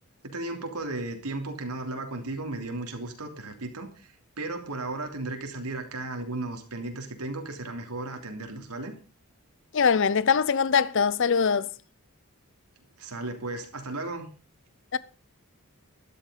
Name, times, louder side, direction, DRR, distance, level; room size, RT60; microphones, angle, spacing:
voice 1, 0.2-9.0 13.0-14.3, right 2 dB, 90° right, 3.0 m, -35 dB
voice 2, 9.7-11.7 14.9-15.0, left 6 dB, 55° left, 0.6 m, -22 dB
13.0 x 12.0 x 5.1 m
head